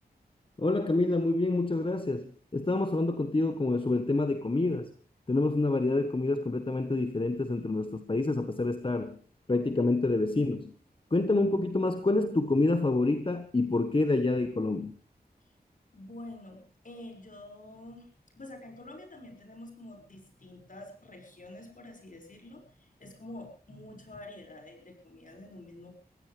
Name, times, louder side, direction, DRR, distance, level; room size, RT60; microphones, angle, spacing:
voice 1, 0.6-4.9 5.3-9.2 9.5-10.7 11.1-15.0, left 2 dB, 30° left, 8 dB, 1.3 m, -27 dB
voice 2, 15.9-18.1 18.4-25.9, left 1 dB, 55° left, 4 dB, 6.0 m, -47 dB
23.0 x 15.5 x 3.4 m, 0.37 s
wide cardioid pair, 95°, 17 cm